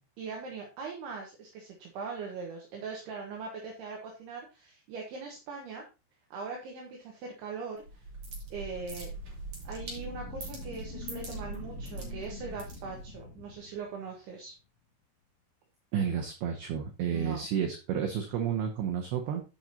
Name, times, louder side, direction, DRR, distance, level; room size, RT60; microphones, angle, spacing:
voice 1, 0.2-5.8 6.3-8.1 8.5-9.1 9.6-14.5 17.1-17.4, right 4 dB, 70° right, 0 dB, 2.9 m, -41 dB
sound 1, 7.8-13.2, right 3 dB, 40° right, 3.2 m, -42 dB
sound 2, 9.5-14.5, left 9 dB, 80° left, 3.0 m, -47 dB
voice 2, 15.9-19.4, right 8 dB, 85° right, 4 dB, 2.2 m, -31 dB
13.5 x 5.2 x 2.8 m, 0.30 s
omnidirectional pair, 5.9 m